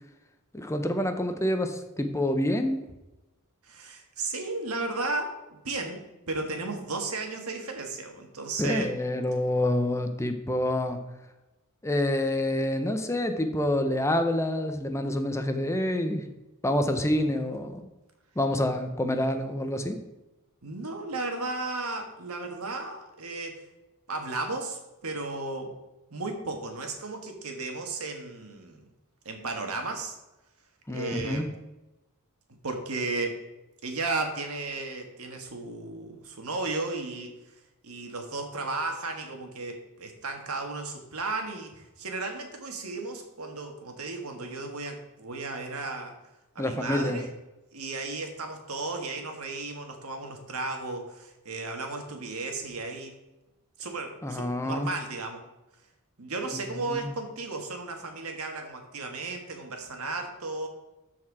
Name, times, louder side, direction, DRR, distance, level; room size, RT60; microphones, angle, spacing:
voice 1, 0.5-2.8 8.6-11.0 11.8-16.2 16.6-17.9 18.4-20.0 30.9-31.5 46.6-47.2 54.2-54.9 56.9-57.1, left 1 dB, 15° left, 6 dB, 0.7 m, -27 dB
voice 2, 3.6-8.9 20.6-23.6 24.1-25.7 26.1-28.8 29.2-30.2 30.9-31.5 32.6-33.4 33.8-37.3 37.8-46.1 46.5-47.3 47.7-53.2 53.8-55.4 56.2-60.7, right 3 dB, 75° right, 4 dB, 1.6 m, -34 dB
13.0 x 4.7 x 4.8 m, 1.0 s
head